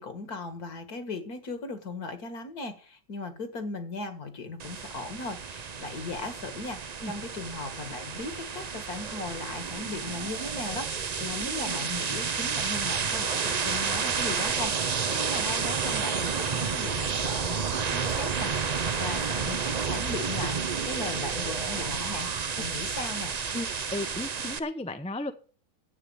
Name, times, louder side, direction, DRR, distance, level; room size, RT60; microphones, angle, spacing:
voice 1, 0.0-22.3 22.6-23.3, left 3 dB, 60° left, 2.3 m, -38 dB
sound 1, 4.6-24.6, right 6 dB, 65° right, 0.4 m, -30 dB
voice 2, 23.5-25.3, left 2 dB, 5° left, 0.6 m, -34 dB
9.8 x 8.3 x 8.7 m
omnidirectional pair, 1.8 m